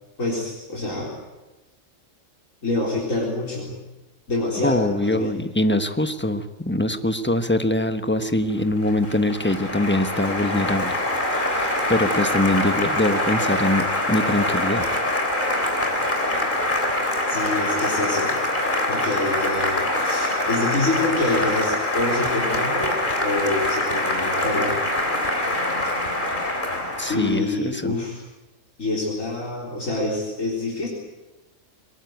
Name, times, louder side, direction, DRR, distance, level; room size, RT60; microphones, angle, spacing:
voice 1, 0.2-1.2 2.6-3.8 4.3-5.3 17.3-18.4 18.9-24.8 27.1-28.2 28.8-30.9, left 2 dB, 75° left, -3 dB, 4.4 m, -26 dB
voice 2, 4.6-11.0 11.5-14.8 15.4-16.0 27.0-27.9, left 1 dB, 10° left, 8 dB, 1.2 m, -23 dB
Applause, 8.5-27.4, left 1 dB, 35° left, 3.8 m, -24 dB
23.0 x 19.5 x 9.5 m, 1.1 s
omnidirectional pair, 1.4 m